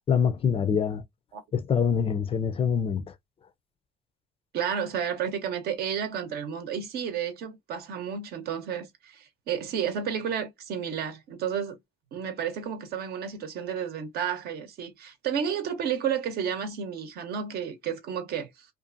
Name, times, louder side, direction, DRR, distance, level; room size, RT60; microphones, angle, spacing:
voice 1, 0.1-1.0 1.5-3.1, left 7 dB, 35° left, 0.4 m, -25 dB
voice 2, 4.5-11.8 12.1-18.7, right 8 dB, 70° right, 0.8 m, -31 dB
2.5 x 2.5 x 2.5 m
cardioid pair, 110°, 17 cm